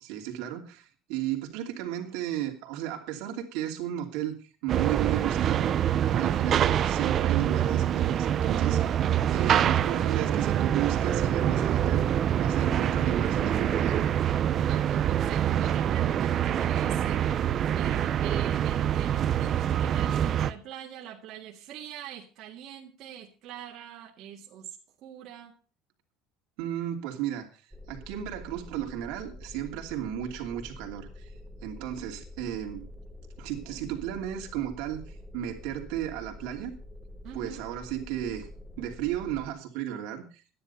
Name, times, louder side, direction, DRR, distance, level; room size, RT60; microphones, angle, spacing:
voice 1, 0.0-5.8 6.1-12.1 12.4-14.1 26.6-31.3 31.6-32.9 33.4-36.7 37.3-38.5 38.8-40.4, right 11 dB, 75° right, 2.8 m, -34 dB
sound 1, 4.7-20.5, right 10 dB, 30° right, 0.6 m, -25 dB
voice 2, 14.7-24.8 25.0-25.6 37.2-37.6, right 10 dB, 50° right, 2.0 m, -43 dB
sound 2, 27.7-39.5, left 1 dB, 5° right, 1.1 m, -46 dB
12.5 x 10.5 x 5.5 m
cardioid pair, 170°, 0 cm